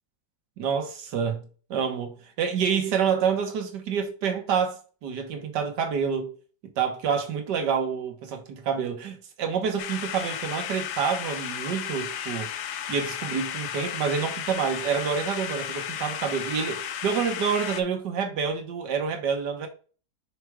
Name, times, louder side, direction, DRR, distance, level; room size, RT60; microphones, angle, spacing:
voice 1, 0.6-6.3 6.8-12.5 12.9-19.7, right 6 dB, 90° right, 1.8 m, -28 dB
sound 1, 9.8-17.8, left 9 dB, 80° left, 1.3 m, -34 dB
5.9 x 3.3 x 4.7 m
omnidirectional pair, 1.8 m